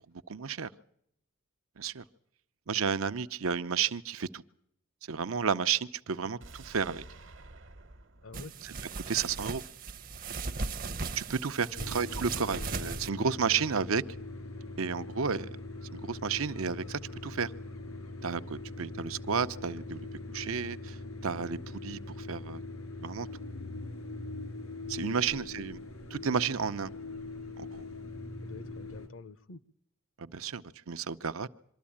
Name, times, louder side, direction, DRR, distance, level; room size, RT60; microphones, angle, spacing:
voice 1, 0.3-0.7 1.8-2.0 2.7-4.4 5.1-7.0 9.1-9.6 11.1-14.0 14.8-15.5 15.9-17.5 18.2-20.1 20.3-21.0 21.2-22.6 23.0-23.3 24.9-25.8 26.1-26.9 27.6-27.8 30.2-31.5, right 6 dB, 85° right, 11 dB, 0.7 m, -32 dB
sound 1, 6.4-9.5 9.9-10.0, right 2 dB, 65° right, 1.1 m, -52 dB
voice 2, 8.2-8.6 11.6-11.9 12.4-12.7 25.1-25.4 28.4-29.6, left 3 dB, 75° left, 17 dB, 0.8 m, -48 dB
sound 2, 8.3-13.1, right 4 dB, 40° right, 0.7 m, -37 dB
sound 3, 11.8-29.1, left 2 dB, 90° left, 3.5 m, -42 dB
24.5 x 13.0 x 8.6 m, 0.74 s
head